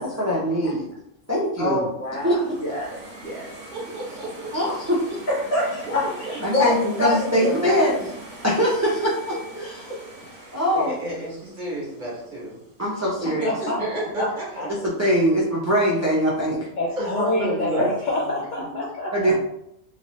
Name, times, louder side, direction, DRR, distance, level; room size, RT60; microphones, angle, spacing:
voice 1, 0.2-0.9 1.3-1.9 2.2-2.6 4.5-5.2 6.4-8.1 8.4-9.9 10.5-10.9 12.8-13.5 14.8-16.7 17.8-17.9 19.1-19.3, equal, 20° right, -6 dB, 0.4 m, -22 dB
voice 2, 1.6-3.5 5.3-6.0 6.5-7.9 9.9-10.0 17.0-18.0, left 1 dB, 50° left, -6 dB, 1.6 m, -26 dB
sound 1, 2.0-13.0, right 2 dB, 55° right, 1.4 m, -42 dB
voice 3, 3.7-4.7 5.8-5.9 10.7-12.6 13.2-14.9 17.0-17.1 17.7-17.8, right 1 dB, 40° right, -5 dB, 1.1 m, -32 dB
voice 4, 13.4-13.9 14.2-14.3 14.6-14.7 16.7-16.9 17.2-19.3, left 2 dB, 75° left, -1 dB, 0.4 m, -27 dB
3.1 x 2.8 x 3.0 m, 0.78 s
omnidirectional pair, 1.3 m